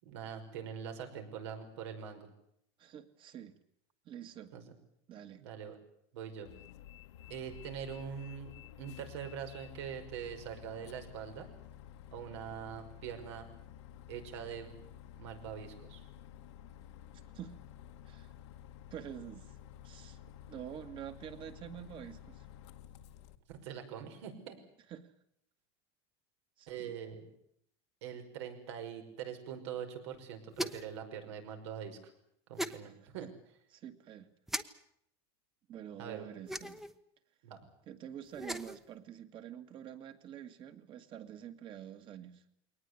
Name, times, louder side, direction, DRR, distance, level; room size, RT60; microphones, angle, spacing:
voice 1, 0.0-2.3 4.5-4.6 5.4-5.8 6.1-6.5 7.3-11.5 12.1-13.5 14.1-14.7 15.2-16.0 23.5-24.6 26.7-27.3 28.0-32.1 32.5-33.3 36.0-36.3 37.4-37.6, right 8 dB, 80° right, 5 dB, 5.6 m, -43 dB
voice 2, 2.8-3.5 4.0-4.5 5.1-5.4 17.3-17.6 18.1-18.3 18.9-19.6 19.8-20.2 20.5-22.5 24.9-25.1 26.6-27.0 32.8-33.3 33.7-34.3 35.7-36.8 37.9-42.5, right 10 dB, 35° right, 9 dB, 2.1 m, -47 dB
Bus, 6.5-23.4, left 10 dB, 90° left, 1.8 m, -52 dB
sound 1, 30.5-31.0 32.6-32.8 34.5-34.6 36.5-36.9 38.3-38.8, equal, ahead, 1.0 m, -38 dB
22.5 x 19.0 x 9.8 m, 0.72 s
supercardioid pair, 150°, 14 cm